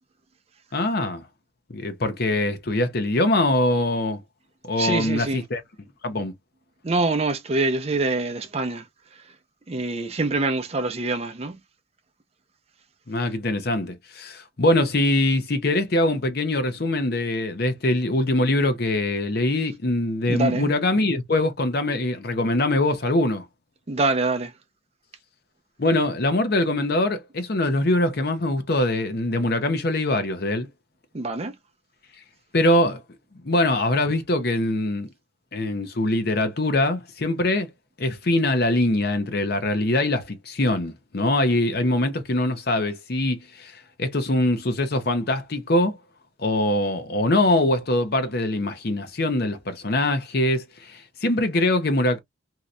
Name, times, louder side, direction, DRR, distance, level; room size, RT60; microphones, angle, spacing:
voice 1, 0.7-1.3 1.7-4.2 4.6-5.6 6.0-6.3 13.1-23.4 25.8-30.7 32.5-33.0 33.4-35.1 35.5-37.7 38.0-46.0 46.4-52.2, left 1 dB, 50° left, 0.7 m, -23 dB
voice 2, 4.8-5.4 6.8-8.9 9.7-11.6 20.3-20.7 23.9-24.5 31.1-31.6, right 3 dB, 30° right, 0.5 m, -25 dB
3.1 x 2.8 x 2.5 m
head